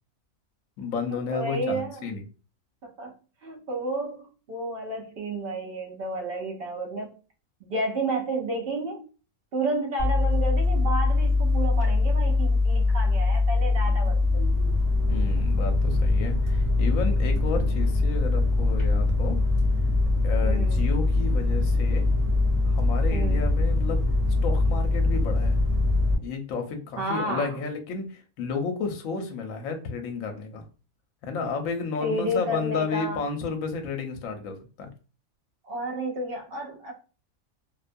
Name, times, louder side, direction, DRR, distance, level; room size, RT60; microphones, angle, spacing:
voice 1, 0.8-2.2 15.1-19.4 20.2-22.1 22.6-24.0 24.4-25.6 26.2-30.6 31.2-34.9, left 4 dB, 70° left, 5 dB, 1.0 m, -32 dB
voice 2, 1.3-2.1 2.8-3.1 3.4-7.1 7.6-9.0 9.5-14.4 20.4-20.8 23.1-23.4 27.0-27.6 32.0-33.2 35.6-36.9, right 1 dB, 55° right, 0 dB, 0.7 m, -31 dB
sound 1, 10.0-26.2, left 2 dB, 30° right, 0.9 m, -22 dB
2.6 x 2.2 x 2.5 m, 0.36 s
omnidirectional pair, 1.5 m